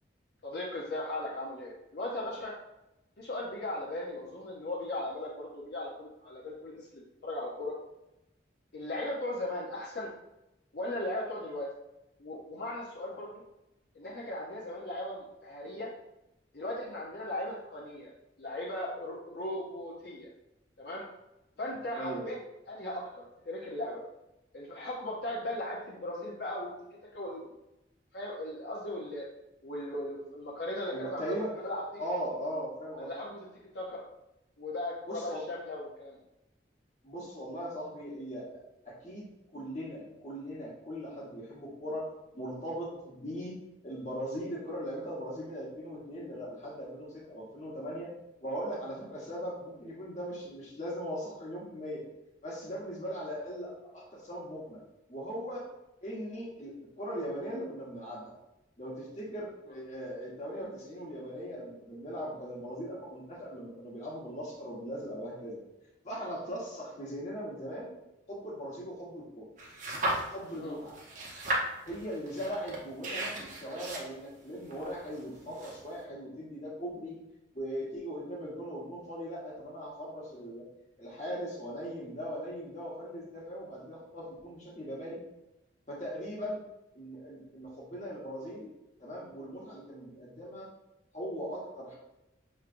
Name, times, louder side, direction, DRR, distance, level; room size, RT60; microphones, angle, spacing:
voice 1, 0.4-2.5 3.2-7.7 8.7-10.1 10.7-11.7 12.2-13.4 13.9-15.9 16.5-18.1 18.4-20.3 20.8-21.0 21.6-22.4 22.7-24.0 24.5-26.7 27.1-27.5 28.1-29.3 29.6-31.3 31.6-32.0 32.9-33.5 33.7-34.0 34.6-36.2 70.6-70.8, left 1 dB, 60° left, -5 dB, 0.6 m, -37 dB
voice 2, 30.9-31.5 32.0-33.1 35.1-35.4 37.0-39.3 39.5-43.5 43.8-48.1 48.4-52.0 52.4-54.8 55.1-55.6 56.0-58.3 58.8-65.6 66.0-67.9 68.3-69.4 70.3-71.0 71.8-77.2 77.5-80.7 81.0-85.2 85.9-86.6 86.9-88.7 89.0-90.7 91.1-92.0, equal, 40° left, -4 dB, 1.2 m, -39 dB
sound 1, 69.6-70.6 70.9-76.0, right 1 dB, 45° right, 0.8 m, -35 dB
5.7 x 3.1 x 2.5 m, 0.92 s
head